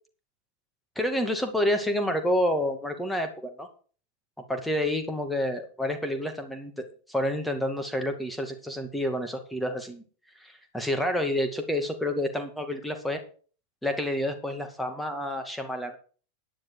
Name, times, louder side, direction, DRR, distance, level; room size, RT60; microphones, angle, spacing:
voice 1, 1.0-3.7 4.5-10.0 10.4-13.2 13.8-16.0, left 1 dB, 5° left, 6 dB, 2.2 m, -29 dB
10.5 x 10.5 x 4.8 m, 0.41 s
figure-of-eight pair, 90°, 0 cm